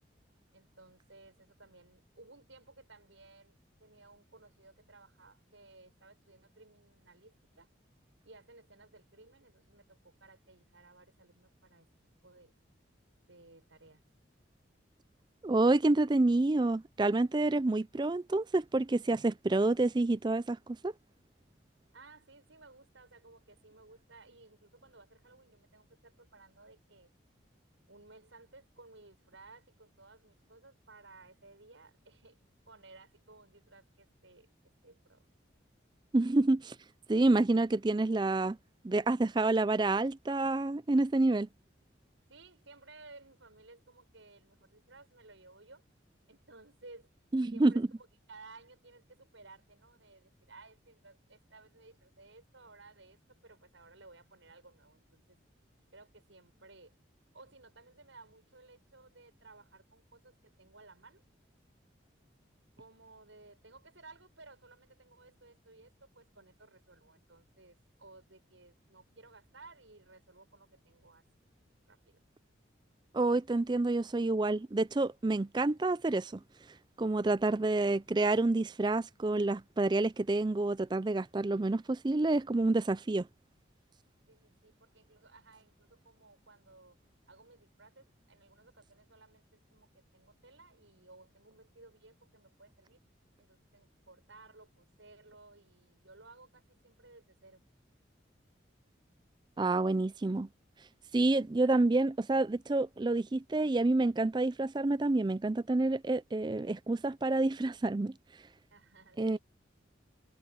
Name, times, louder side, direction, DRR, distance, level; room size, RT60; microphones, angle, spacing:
voice 1, 0.5-7.7 8.2-11.9 12.2-12.5 13.2-14.0 21.9-27.1 27.9-32.4 32.7-34.5 34.8-35.2 42.3-45.8 46.3-47.1 47.5-47.8 48.3-55.4 55.9-56.9 57.3-61.2 62.8-71.2 71.9-72.2 84.3-87.0 87.3-93.0 93.4-97.6 108.7-109.4, right 3 dB, 85° right, 7.2 m, -57 dB
voice 2, 15.4-20.9 36.1-36.8 37.1-38.6 38.8-41.5 47.3-47.9 73.1-76.4 77.0-83.3 99.6-100.5 101.1-108.1 109.2-109.4, right 2 dB, 25° right, 0.4 m, -28 dB
head